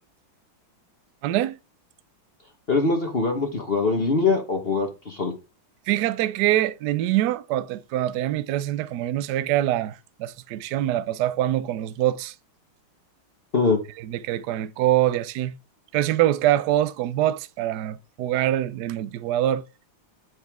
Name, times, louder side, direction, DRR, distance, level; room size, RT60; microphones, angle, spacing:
voice 1, 1.2-1.6 5.9-12.3 14.0-15.5 15.9-19.6, right 13 dB, 75° right, 1.0 m, -24 dB
voice 2, 2.7-5.3 13.5-13.8, left 4 dB, 35° left, 1.0 m, -23 dB
7.6 x 5.6 x 3.5 m
omnidirectional pair, 2.3 m